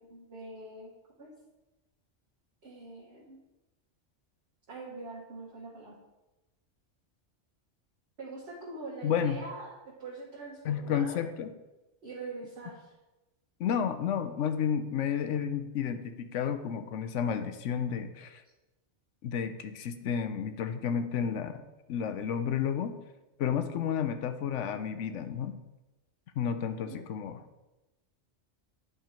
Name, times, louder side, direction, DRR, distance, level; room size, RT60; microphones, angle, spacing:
voice 1, 0.1-0.9 1.2-1.3 2.6-3.4 4.7-6.0 8.2-11.2 12.0-12.9 26.8-27.0, right 3 dB, 60° right, -6 dB, 1.6 m, -43 dB
voice 2, 9.0-9.4 10.6-11.5 13.6-18.4 19.2-21.6 21.9-22.9 23.4-25.6 26.4-27.4, left 8 dB, 85° left, 9 dB, 1.0 m, -31 dB
9.9 x 3.8 x 4.4 m, 1.0 s
omnidirectional pair, 1.2 m